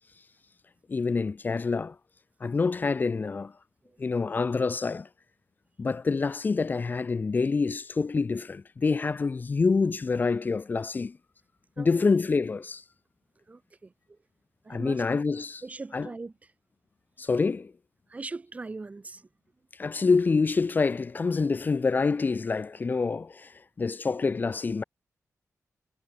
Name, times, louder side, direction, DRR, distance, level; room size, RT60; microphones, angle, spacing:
voice 1, 0.9-2.0 2.4-3.5 4.0-5.1 5.8-11.2 11.8-12.8 14.7-15.6 15.9-16.1 17.2-17.7 19.8-24.8, left 4 dB, 30° left, 1.8 m, -26 dB
voice 2, 11.8-12.1 13.5-14.2 14.6-15.0 15.6-16.3 18.1-19.3, right 3 dB, 25° right, 2.5 m, -40 dB
wide cardioid pair, 170°, 6 cm